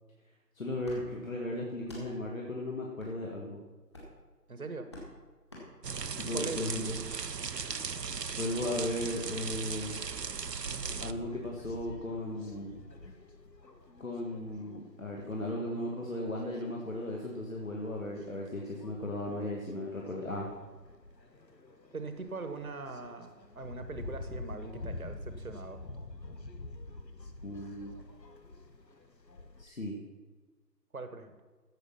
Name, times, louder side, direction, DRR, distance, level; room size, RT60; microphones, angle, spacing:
voice 1, 0.6-3.6 6.2-7.0 8.4-10.0 11.0-12.8 14.0-20.5 27.4-28.0 29.6-30.0, left 1 dB, 55° left, -1 dB, 2.1 m, -36 dB
sound 1, 0.8-1.0 1.8-2.1 3.0-3.1 3.9-4.2 4.9-5.1 5.5-5.7 6.6-6.7 7.7-7.8, left 1 dB, 15° left, 1.9 m, -48 dB
voice 2, 4.5-4.9 6.3-6.7 21.9-25.8 30.9-31.3, right 3 dB, 60° right, 8 dB, 1.4 m, -41 dB
sound 2, 5.8-11.1, right 5 dB, 75° right, 0.9 m, -37 dB
sound 3, 10.8-29.6, left 2 dB, 85° left, 1.7 m, -48 dB
15.5 x 7.8 x 5.8 m, 1.3 s
figure-of-eight pair, 165°, 49 cm